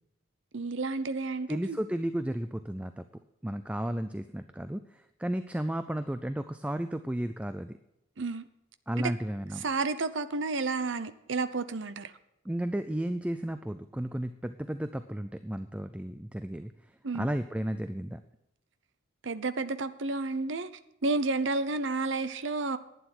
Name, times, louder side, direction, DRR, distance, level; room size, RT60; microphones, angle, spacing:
voice 1, 0.5-1.8 8.2-8.4 9.0-9.1 9.6-12.1 17.0-17.3 19.2-20.7 21.0-22.8, right 3 dB, 65° right, 0.7 m, -31 dB
voice 2, 1.5-3.0 3.4-7.7 8.9-9.7 12.4-18.2, right 1 dB, 5° right, 0.4 m, -33 dB
11.5 x 9.4 x 6.0 m
head